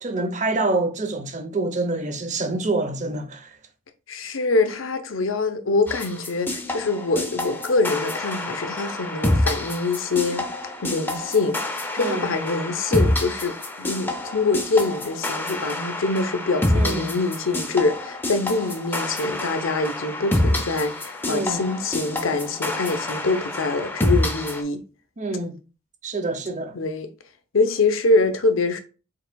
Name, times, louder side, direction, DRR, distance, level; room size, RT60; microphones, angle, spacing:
voice 1, 0.0-3.6 12.0-12.3 16.7-17.2 21.3-21.6 25.2-25.6 26.0-26.8, right 2 dB, 35° right, 0.7 m, -26 dB
voice 2, 4.1-10.5 10.8-24.8 26.7-27.1 27.5-28.8, left 3 dB, 75° left, 0.7 m, -24 dB
sound 1, 5.9-24.6, left 1 dB, 10° left, 0.5 m, -27 dB
4.7 x 4.4 x 2.2 m
head